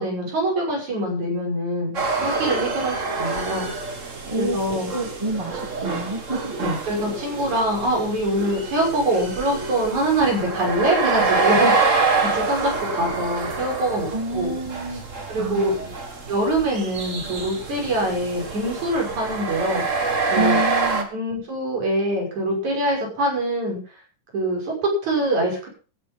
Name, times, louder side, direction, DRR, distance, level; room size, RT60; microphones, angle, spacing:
voice 1, 0.0-3.7 4.4-4.9 6.5-14.5 15.3-15.7 16.3-19.8 20.3-20.6 21.1-23.8 24.3-25.7, right 1 dB, 60° right, 0 dB, 7.4 m, -24 dB
sound 1, 1.9-21.0, right 4 dB, 30° right, 1.8 m, -26 dB
voice 2, 4.3-4.6 4.9-6.5 14.1-15.0 15.4-15.9 20.3-21.1, right 2 dB, 10° right, 1 dB, 2.9 m, -28 dB
15.0 x 10.5 x 5.4 m, 0.37 s
omnidirectional pair, 3.8 m